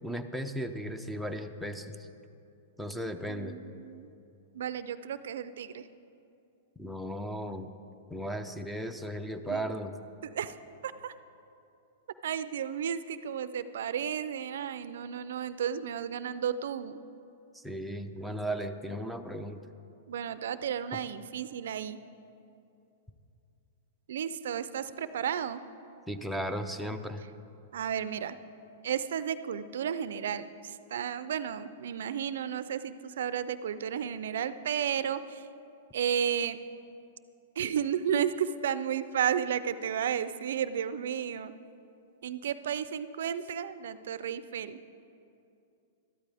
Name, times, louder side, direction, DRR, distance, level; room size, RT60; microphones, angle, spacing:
voice 1, 0.0-2.0 2.8-3.5 6.8-7.7 8.1-9.9 17.5-19.6 20.9-21.0 26.1-27.2, equal, ahead, 8 dB, 0.5 m, -36 dB
voice 2, 3.3-4.1 4.5-5.9 9.4-9.6 10.2-10.6 10.8-11.1 12.2-17.0 20.1-22.0 24.1-25.6 27.7-28.4 28.8-35.5 35.9-36.6 37.6-41.5 42.2-44.8, right 8 dB, 75° right, 14 dB, 0.4 m, -33 dB
13.0 x 13.0 x 3.4 m, 2.7 s
hypercardioid pair, 140°, 0 cm